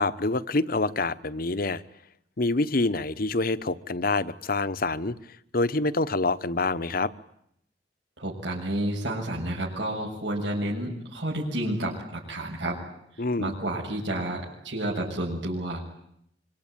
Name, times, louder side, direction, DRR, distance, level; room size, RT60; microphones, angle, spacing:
voice 1, 0.0-1.8 2.4-5.1 5.5-7.1 13.2-13.6, left 2 dB, 55° left, 14 dB, 1.1 m, -26 dB
voice 2, 8.2-12.8 13.4-15.9, right 1 dB, 90° right, -3 dB, 6.9 m, -30 dB
25.5 x 24.5 x 9.2 m, 0.74 s
head